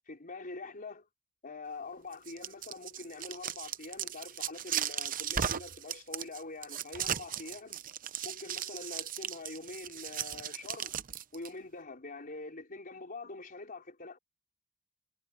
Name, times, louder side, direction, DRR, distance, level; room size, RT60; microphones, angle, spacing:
voice 1, 0.1-1.1 1.4-7.8 8.2-10.9 11.3-14.2, left 3 dB, 40° left, 4.1 m, -44 dB
sound 1, 2.1-11.5, right 9 dB, 40° right, 0.7 m, -37 dB
head